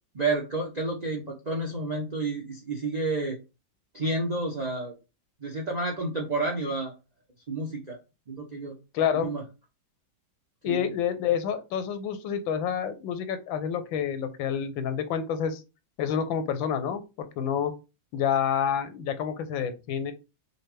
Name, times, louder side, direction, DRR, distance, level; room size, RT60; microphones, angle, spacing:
voice 1, 0.1-3.4 3.9-4.9 5.4-6.9 7.5-8.0 8.3-8.7 9.1-9.4 10.6-10.9, right 2 dB, 75° right, 0 dB, 0.3 m, -30 dB
voice 2, 8.9-9.3 10.6-15.6 16.0-17.7 18.1-20.1, left 8 dB, 90° left, 10 dB, 1.4 m, -28 dB
5.4 x 2.2 x 3.2 m, 0.28 s
omnidirectional pair, 2.0 m